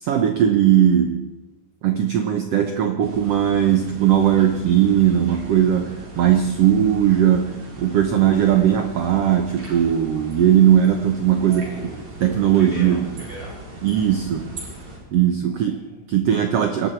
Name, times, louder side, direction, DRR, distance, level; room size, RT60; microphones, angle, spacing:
voice 1, 0.0-1.3 1.8-11.6 12.2-13.0 13.8-14.6 15.1-15.8 16.1-16.9, right 10 dB, 85° right, 6 dB, 1.3 m, -18 dB
sound 1, 3.0-15.0, right 1 dB, 65° right, 6.1 m, -39 dB
voice 2, 11.4-12.0 12.4-13.6 15.5-16.1, equal, 15° right, -5 dB, 6.8 m, -38 dB
26.5 x 12.0 x 4.5 m, 1.1 s
omnidirectional pair, 4.2 m